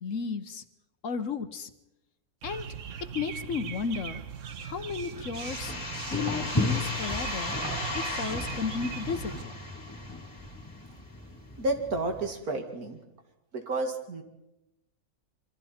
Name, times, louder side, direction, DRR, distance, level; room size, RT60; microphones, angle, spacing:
voice 1, 0.0-0.6 1.0-1.7 2.4-2.7 3.1-4.2 4.6-5.7 6.1-7.5 7.9-9.5, left 6 dB, 60° left, 10 dB, 1.3 m, -33 dB
sound 1, 2.4-9.4, right 8 dB, 60° right, 1.3 m, -40 dB
sound 2, 5.1-12.3, left 2 dB, 10° left, 5.1 m, -36 dB
sound 3, 5.3-10.8, left 1 dB, 25° left, 2.5 m, -37 dB
voice 2, 11.6-13.0 13.5-14.2, right 2 dB, 80° right, 5 dB, 2.6 m, -31 dB
26.5 x 23.5 x 4.4 m, 0.89 s
omnidirectional pair, 1.6 m